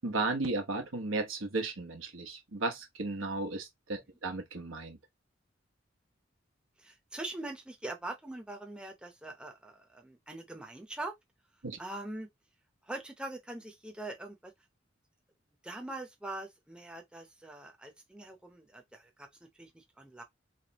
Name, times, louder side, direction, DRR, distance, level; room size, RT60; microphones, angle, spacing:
voice 1, 0.0-5.0 11.6-11.8, right 3 dB, 90° right, 1.2 m, -34 dB
voice 2, 6.8-11.1 11.8-12.3 12.8-14.5 15.6-20.2, right 2 dB, 5° right, 0.7 m, -43 dB
3.4 x 3.4 x 2.9 m
head